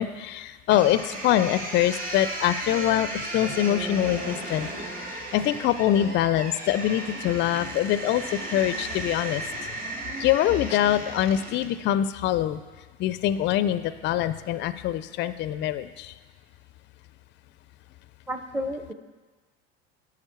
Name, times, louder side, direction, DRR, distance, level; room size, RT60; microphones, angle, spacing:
voice 1, 0.0-4.7 5.3-9.7 10.2-12.6 13.0-16.1, left 12 dB, 40° left, 14 dB, 0.4 m, -24 dB
sound 1, 0.7-11.7, right 2 dB, 30° right, 1.7 m, -35 dB
voice 2, 18.3-18.9, equal, 5° right, 7 dB, 0.7 m, -31 dB
8.9 x 5.9 x 4.5 m, 1.3 s
supercardioid pair, 90°, 31 cm